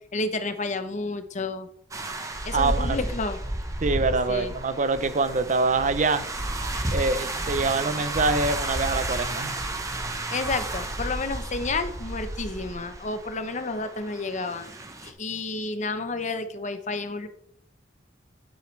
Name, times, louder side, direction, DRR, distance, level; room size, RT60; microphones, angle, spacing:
voice 1, 0.1-1.7 2.4-3.4 4.3-4.5 10.3-14.7 15.0-17.3, left 3 dB, 45° left, 10 dB, 0.9 m, -30 dB
sound 1, 1.9-15.1, right 1 dB, 20° right, 1.0 m, -32 dB
voice 2, 2.5-3.0 3.8-6.2 6.9-9.6, right 3 dB, 45° right, 12 dB, 0.7 m, -25 dB
9.9 x 8.2 x 3.3 m, 0.69 s
head